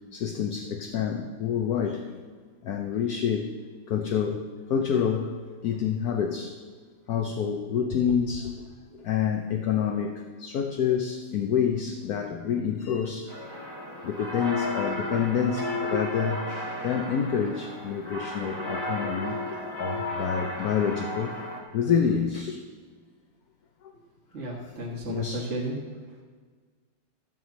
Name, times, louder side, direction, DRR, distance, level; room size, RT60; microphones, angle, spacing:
voice 1, 0.1-2.2 2.6-3.5 3.9-4.4 4.7-5.4 5.6-6.6 7.1-13.3 14.0-16.5 16.8-21.4 21.7-22.6 23.8-23.9 25.1-25.5, left 7 dB, 65° left, 3 dB, 1.1 m, -28 dB
sound 1, 13.3-21.6, left 1 dB, 15° left, 1.4 m, -34 dB
voice 2, 24.3-25.8, right 1 dB, 40° right, -4 dB, 1.8 m, -33 dB
13.5 x 4.8 x 7.2 m, 1.5 s
omnidirectional pair, 2.1 m